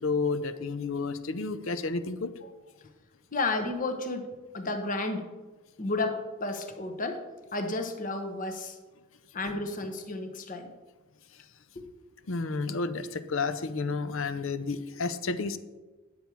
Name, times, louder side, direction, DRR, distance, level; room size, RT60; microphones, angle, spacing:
voice 1, 0.0-2.3 12.3-15.6, left 4 dB, 65° left, 12 dB, 0.6 m, -31 dB
voice 2, 3.3-4.3 4.5-5.3 5.8-7.2 7.5-8.8 9.3-10.7 11.8-11.9, left 2 dB, 40° left, 6 dB, 0.9 m, -32 dB
9.9 x 7.0 x 4.6 m, 1.3 s
head